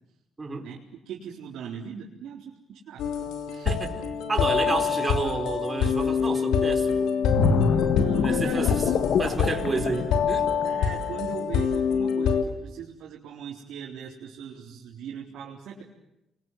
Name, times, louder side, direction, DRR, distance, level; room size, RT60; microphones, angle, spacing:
voice 1, 1.0-3.1 3.5-3.7 4.6-4.9 8.0-8.8 9.7-9.8 10.6-15.8, right 7 dB, 80° right, -4 dB, 4.2 m, -39 dB
sound 1, 3.0-12.4, left 7 dB, 85° left, 3.0 m, -26 dB
voice 2, 3.6-4.0 4.3-7.1 8.2-8.7 9.2-10.5, right 3 dB, 25° right, 4 dB, 4.8 m, -30 dB
sound 2, 7.3-10.9 11.3-11.5, left 5 dB, 70° left, 2.0 m, -25 dB
29.5 x 23.0 x 7.9 m, 0.87 s
cardioid pair, 90°, 0 cm